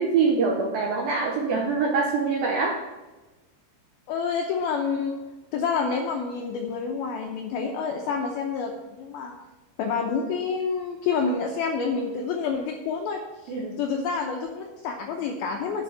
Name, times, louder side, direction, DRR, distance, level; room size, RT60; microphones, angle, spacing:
voice 1, 0.0-2.8 13.5-13.8, right 4 dB, 75° right, 0 dB, 2.1 m, -24 dB
voice 2, 4.1-5.2 5.5-8.7 9.0-9.3 9.8-15.8, left 5 dB, 80° left, 1 dB, 2.2 m, -28 dB
10.0 x 5.0 x 7.2 m, 1.1 s
omnidirectional pair, 5.2 m